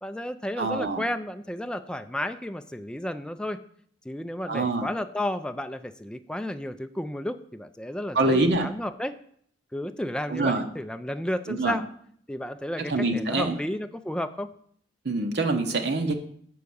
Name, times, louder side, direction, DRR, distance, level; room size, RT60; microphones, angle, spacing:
voice 1, 0.0-3.6 4.1-9.1 9.7-11.8 12.3-14.5, left 1 dB, 5° left, 9 dB, 0.4 m, -32 dB
voice 2, 0.6-1.0 4.5-4.9 8.1-8.7 10.3-10.6 11.5-11.8 12.9-13.6 15.0-16.1, right 2 dB, 65° right, 4 dB, 0.8 m, -25 dB
7.6 x 4.7 x 6.9 m, 0.63 s
head